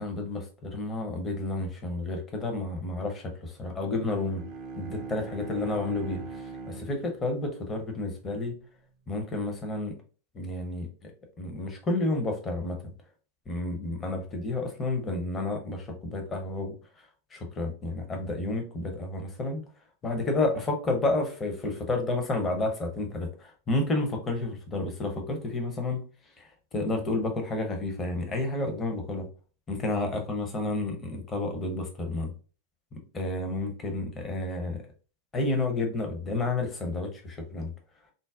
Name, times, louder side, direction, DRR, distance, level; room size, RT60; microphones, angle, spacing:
voice 1, 0.0-4.4 4.8-8.6 9.1-10.0 10.3-11.1 11.4-12.9 13.5-16.8 17.3-19.6 20.0-26.0 26.4-29.3 29.7-32.3 32.9-34.8 35.3-37.7, left 2 dB, 20° left, 3 dB, 0.7 m, -31 dB
Bowed string instrument, 3.9-8.5, right 4 dB, 35° right, 0.4 m, -42 dB
3.8 x 2.0 x 2.4 m, 0.38 s
figure-of-eight pair, 90°, 0 cm